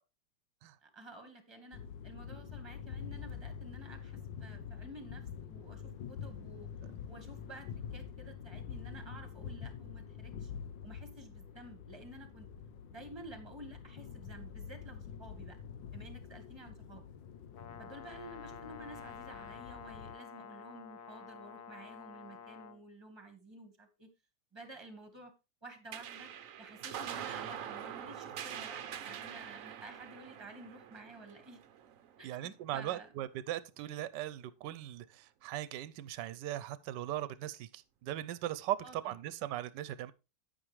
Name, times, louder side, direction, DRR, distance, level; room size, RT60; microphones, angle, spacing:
voice 1, 0.8-6.7 7.1-10.5 10.8-12.5 12.9-15.6 15.9-17.1 17.8-24.1 24.5-25.3 25.6-26.3 26.6-31.6 32.2-33.1 38.8-39.0, right 2 dB, 15° right, 1.5 m, -52 dB
sound 1, 1.7-20.1, left 7 dB, 85° left, 1.5 m, -46 dB
Brass instrument, 17.5-22.8, left 7 dB, 60° left, 1.4 m, -49 dB
sound 2, 25.9-32.7, right 9 dB, 60° right, 0.9 m, -44 dB
voice 2, 32.2-40.1, right 13 dB, 75° right, 1.3 m, -39 dB
9.5 x 8.9 x 3.1 m
omnidirectional pair, 2.0 m